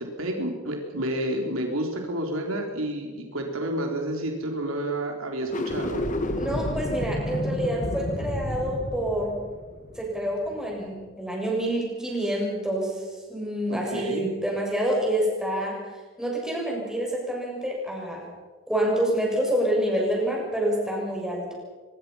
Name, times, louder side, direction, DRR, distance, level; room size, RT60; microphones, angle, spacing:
voice 1, 0.0-6.0 13.7-14.3, right 1 dB, 85° right, 2 dB, 4.2 m, -30 dB
sound 1, 5.4-10.7, left 1 dB, 40° left, 1.8 m, -30 dB
voice 2, 6.3-9.4 10.0-13.0 13.3-15.8 16.2-18.3 18.7-21.5, right 1 dB, 5° right, -2 dB, 7.1 m, -27 dB
24.0 x 22.5 x 5.9 m, 1.4 s
head